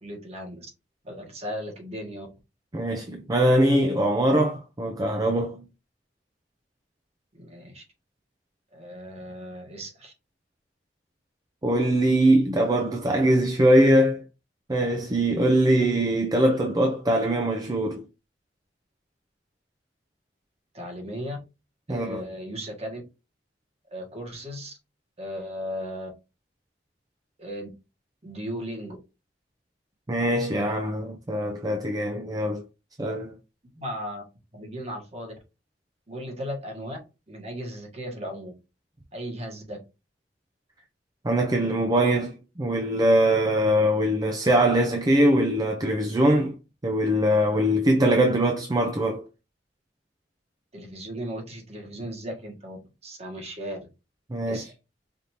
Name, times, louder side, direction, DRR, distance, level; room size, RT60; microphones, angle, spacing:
voice 1, 0.0-0.7 1.0-2.3 7.3-7.8 8.7-10.1 20.7-21.4 21.9-23.0 23.9-24.7 25.2-26.1 27.4-27.7 28.2-29.0 33.7-34.2 34.5-35.3 36.1-37.0 37.3-38.5 39.1-39.8 50.7-52.8 53.0-53.8 54.5-54.7, equal, 35° right, 1.4 m, -36 dB
voice 2, 2.7-5.6 11.6-14.2 14.7-18.0 21.9-22.2 30.1-32.6 33.0-33.3 41.2-46.6 46.8-49.3 54.3-54.7, right 1 dB, 20° right, 0.5 m, -22 dB
5.0 x 2.7 x 2.9 m
head